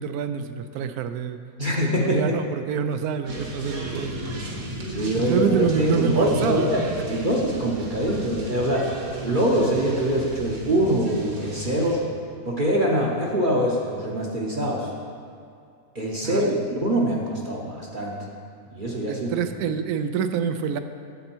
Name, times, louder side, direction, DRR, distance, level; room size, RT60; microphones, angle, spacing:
voice 1, 0.0-1.4 1.8-4.6 5.3-6.7 16.2-16.6 19.1-20.8, right 7 dB, 80° right, 10 dB, 1.1 m, -27 dB
voice 2, 1.6-2.4 4.9-8.9 9.2-12.0 12.5-14.9 15.9-18.2 18.7-19.3, equal, 40° right, -3 dB, 0.9 m, -24 dB
sound 1, 3.2-12.0, right 1 dB, 55° right, 1.6 m, -33 dB
9.4 x 7.9 x 4.5 m, 2.3 s
omnidirectional pair, 1.6 m